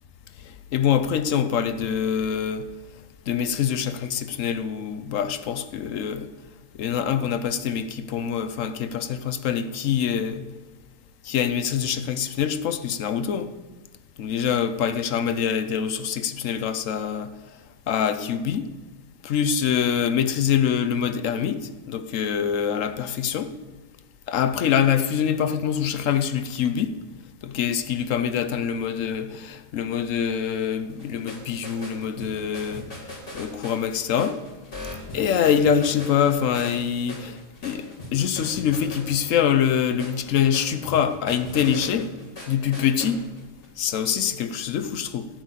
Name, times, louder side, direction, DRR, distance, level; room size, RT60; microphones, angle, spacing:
voice 1, 0.5-2.7 3.3-6.3 6.8-10.4 11.2-13.5 14.2-17.3 17.9-18.7 19.2-23.5 24.3-26.9 27.4-32.9 33.3-34.4 35.1-42.1 42.5-43.2 43.8-45.3, left 8 dB, 60° left, 0.9 m, -24 dB
sound 1, 30.9-43.7, left 1 dB, 30° left, 2.6 m, -40 dB
13.0 x 6.3 x 8.2 m
omnidirectional pair, 1.8 m